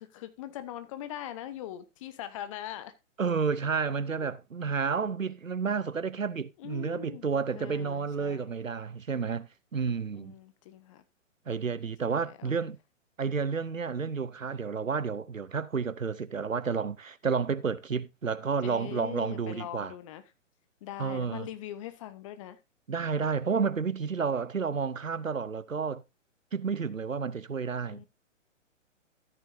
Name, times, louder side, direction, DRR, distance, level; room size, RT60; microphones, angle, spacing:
voice 1, 0.0-2.9 6.6-8.5 10.1-11.0 12.1-12.6 18.6-20.2 20.8-22.6 27.8-28.1, left 12 dB, 25° left, 0.9 m, -42 dB
voice 2, 3.2-10.3 11.5-12.8 13.2-19.9 21.0-21.5 22.9-26.0 26.5-28.0, right 5 dB, 85° right, 0.8 m, -31 dB
13.5 x 9.1 x 2.7 m
figure-of-eight pair, 125°, 39 cm